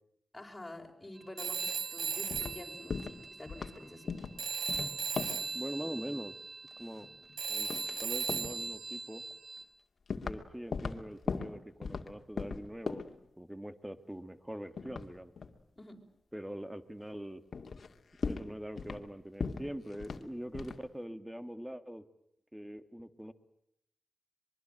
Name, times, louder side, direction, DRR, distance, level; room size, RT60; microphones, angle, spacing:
voice 1, 0.3-4.1 15.8-16.0, left 1 dB, 20° left, 2 dB, 5.5 m, -48 dB
Telephone, 1.4-4.1 4.4-9.6, right 5 dB, 70° right, 3.6 m, -38 dB
sound 1, 2.0-2.6 2.9-3.2 3.5-3.8 4.1-4.4 4.7-5.5 6.7-7.4 7.7-8.0 8.3-8.6 9.3-9.4 10.1-10.4 10.7-12.1 12.4-13.2 14.8-15.6 17.0-17.1 17.5-17.9 18.2-19.1 19.4-20.3 20.5-20.8, left 5 dB, 65° left, 2.2 m, -38 dB
voice 2, 5.5-6.3 6.8-7.1 7.5-7.7 8.0-9.2 10.2-13.0 13.4-15.3 16.3-17.4 18.2-22.0 22.5-23.3, equal, 5° right, 11 dB, 2.1 m, -43 dB
24.0 x 23.5 x 9.1 m, 0.76 s
cardioid pair, 70°, 0 cm